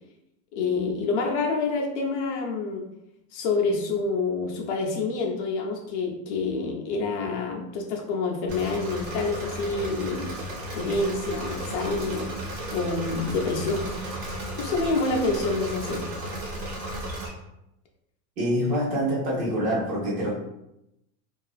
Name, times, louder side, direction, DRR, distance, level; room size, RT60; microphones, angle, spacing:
voice 1, 0.5-2.8 3.3-10.4 10.7-12.4 12.7-13.8 14.5-16.1, left 3 dB, 55° left, 1 dB, 0.5 m, -27 dB
Engine / Mechanisms, 8.5-17.3, right 1 dB, 65° right, 1.1 m, -34 dB
voice 2, 18.4-20.4, equal, 20° right, -5 dB, 0.5 m, -25 dB
2.5 x 2.3 x 2.3 m, 0.86 s
supercardioid pair, 175°, 41 cm